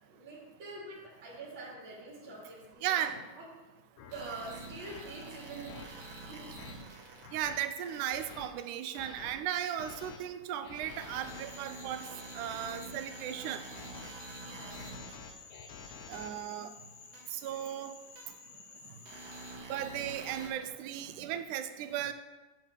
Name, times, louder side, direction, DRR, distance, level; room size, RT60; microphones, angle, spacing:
voice 1, 0.0-3.1 3.3-3.5 4.1-6.4 14.4-14.8, right 3 dB, 40° right, -8 dB, 2.7 m, -46 dB
sound 1, 2.3-2.4 3.1-3.3 4.0-4.1 4.8-5.0 5.7-5.8 6.4-6.7 7.2-7.6 8.1-8.5 9.0-9.3 9.8-10.2 10.6-11.4 12.1-12.8 13.4-14.1 14.5-16.3, left 6 dB, 90° left, 2.4 m, -50 dB
voice 2, 2.8-3.1 7.3-12.1 12.4-13.6 16.1-16.7 17.3-17.9 19.7-22.1, right 10 dB, 80° right, 10 dB, 2.1 m, -36 dB
sound 2, 4.1-7.3 7.8-8.3 9.0-9.1 10.0-10.1 10.9-15.2 16.1-16.2 17.1-17.2 18.2-18.3 19.1-20.5, right 2 dB, 65° right, 2.7 m, -47 dB
Frog, 11.3-19.6, left 5 dB, 75° left, 1.2 m, -53 dB
8.5 x 7.8 x 4.6 m, 1.2 s
omnidirectional pair, 3.6 m